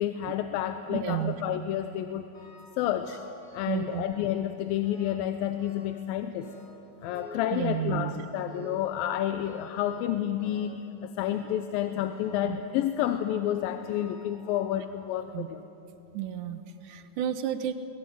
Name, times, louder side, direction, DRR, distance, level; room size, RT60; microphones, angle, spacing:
voice 1, 0.0-2.3 2.8-3.2 3.5-6.5 7.0-15.6, left 11 dB, 85° left, 8 dB, 2.6 m, -30 dB
voice 2, 0.9-1.4 3.7-4.0 7.5-8.1 12.4-12.6 15.3-15.5 16.1-17.7, right 11 dB, 70° right, 9 dB, 2.2 m, -31 dB
sound 1, 2.3-2.8 3.0-4.3 4.8-5.3 5.6-6.1 6.4-8.0 8.5-8.9 9.4-10.1 10.4-10.8 11.2-11.6 12.1-12.5 13.0-13.4 13.8-14.9 15.5-15.6 16.4-16.5 17.0-17.1, equal, 60° left, 9.6 m, -50 dB
22.0 x 20.0 x 9.4 m, 2.8 s
omnidirectional pair, 4.1 m